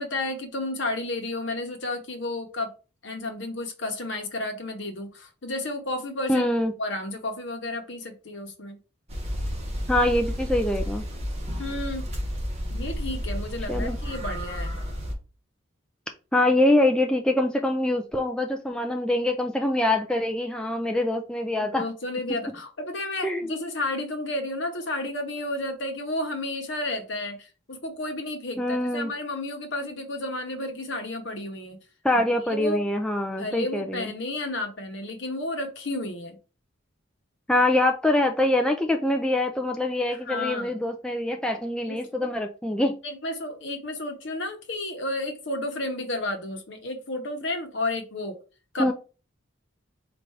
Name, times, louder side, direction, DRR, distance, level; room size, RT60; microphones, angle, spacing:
voice 1, 0.0-2.7 3.0-6.5 6.8-8.8 11.6-12.1 12.7-14.7 21.7-31.8 32.1-32.8 33.4-36.4 40.1-40.8 41.9-42.3 43.0-48.4 48.7-48.9, left 2 dB, 60° left, 0.9 m, -32 dB
voice 2, 6.3-6.7 9.9-11.0 13.7-14.0 16.3-21.9 23.2-23.5 28.6-29.1 32.0-34.1 37.5-43.0 48.8-48.9, left 1 dB, 5° left, 0.3 m, -24 dB
sound 1, 9.1-15.1, equal, 30° right, 1.3 m, -31 dB
4.4 x 2.5 x 4.6 m
head